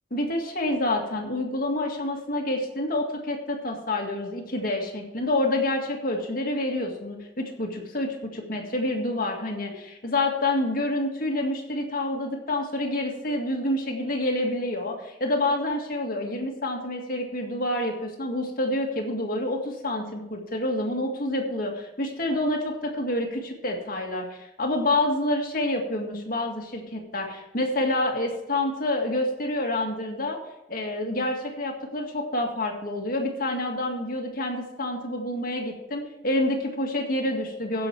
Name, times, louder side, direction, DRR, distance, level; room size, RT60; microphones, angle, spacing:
voice 1, 0.1-30.4 30.7-37.9, left 1 dB, 50° left, 1 dB, 1.9 m, -28 dB
15.5 x 5.8 x 4.7 m, 0.93 s
head